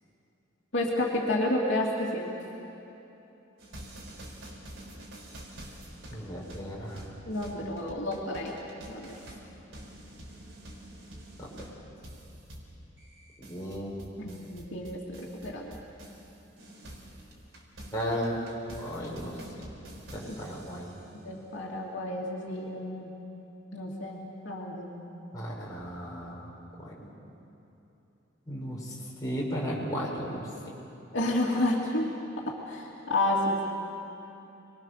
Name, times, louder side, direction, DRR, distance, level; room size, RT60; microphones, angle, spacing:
voice 1, 0.7-2.3 7.2-8.6 8.9-9.2 14.2-15.8 20.3-20.4 21.1-23.1 23.7-25.0 31.1-32.1 32.5-33.6, left 1 dB, 65° left, -3 dB, 2.8 m, -30 dB
sound 1, 3.6-16.3 16.6-21.0, right 1 dB, 90° right, 4.6 m, -47 dB
voice 2, 6.1-7.0 11.4-11.7 13.4-13.9 17.9-18.4 18.8-19.4 20.1-21.0 25.3-26.5 26.8-27.1 28.5-28.9 29.2-30.5, equal, 20° left, -5 dB, 5.4 m, -35 dB
28.0 x 22.0 x 6.7 m, 3.0 s
head